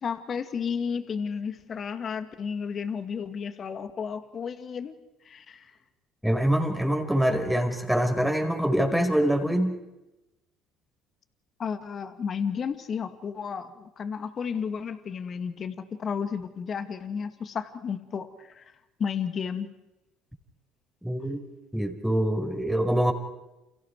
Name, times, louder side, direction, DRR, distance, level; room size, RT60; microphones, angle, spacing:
voice 1, 0.0-4.9 5.3-5.7 11.6-18.6 19.0-19.7, left 6 dB, 45° left, 10 dB, 2.1 m, -32 dB
voice 2, 6.2-9.8 21.0-21.4 21.7-23.1, equal, ahead, 4 dB, 4.9 m, -24 dB
30.0 x 29.5 x 4.8 m, 0.99 s
hypercardioid pair, 65°, 0 cm